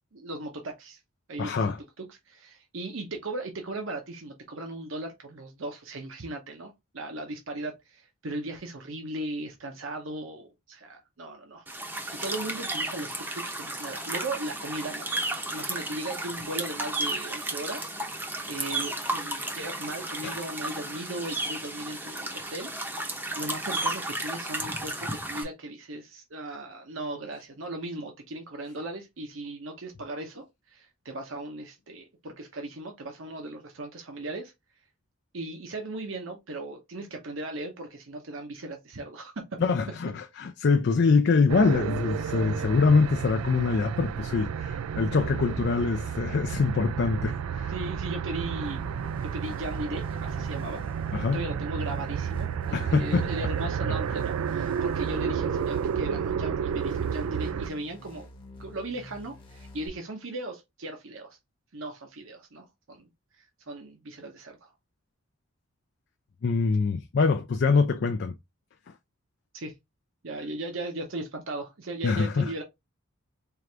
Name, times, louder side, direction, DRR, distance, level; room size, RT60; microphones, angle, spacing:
voice 1, 0.1-1.0 1.3-11.7 12.2-18.0 18.2-22.7 23.3-34.5 35.3-39.6 47.7-48.8 49.2-50.8 51.3-58.3 58.6-61.4 61.7-63.1 63.4-64.7 69.5-69.7 70.2-72.6, right 2 dB, 60° right, 0.8 m, -37 dB
voice 2, 1.4-1.8 20.2-20.3 39.6-47.7 51.1-51.4 52.7-53.3 66.4-68.3 72.0-72.5, left 4 dB, 50° left, 0.4 m, -24 dB
sound 1, 11.7-25.4, right 1 dB, 10° right, 0.7 m, -33 dB
sound 2, 41.5-57.7, right 7 dB, 85° right, 0.3 m, -31 dB
sound 3, 48.6-59.9, left 2 dB, 25° left, 0.9 m, -47 dB
4.6 x 2.5 x 3.2 m
head